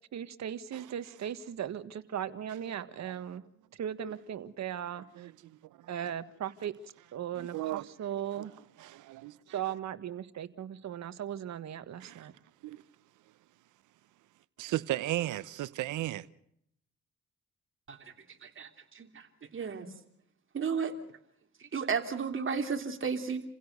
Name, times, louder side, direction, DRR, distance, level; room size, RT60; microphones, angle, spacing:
voice 1, 0.1-3.4 3.7-5.3 5.9-6.7 7.1-8.5 9.5-12.3, right 10 dB, 65° right, 1.7 m, -38 dB
voice 2, 7.4-7.9 8.4-8.5 8.8-9.3 12.0-12.3 12.6-12.8 14.6-16.2, right 15 dB, 80° right, 0.9 m, -35 dB
voice 3, 19.5-19.9 20.5-20.9 21.7-23.4, right 6 dB, 40° right, 3.2 m, -33 dB
29.5 x 16.5 x 6.7 m
cardioid pair, 90°, 30 cm